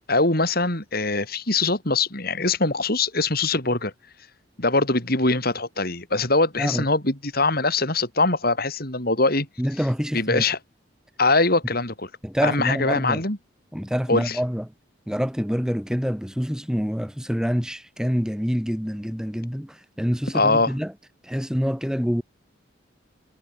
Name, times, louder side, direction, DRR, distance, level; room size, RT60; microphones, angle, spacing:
voice 1, 0.1-3.9 4.6-9.5 10.1-10.6 11.2-12.1 12.4-13.4 14.1-14.4 20.3-20.7, left 3 dB, 50° left, 6.3 m, -22 dB
voice 2, 9.6-10.4 12.2-13.2 13.7-14.6 15.1-20.9 21.2-22.2, equal, 5° right, 2.9 m, -26 dB
head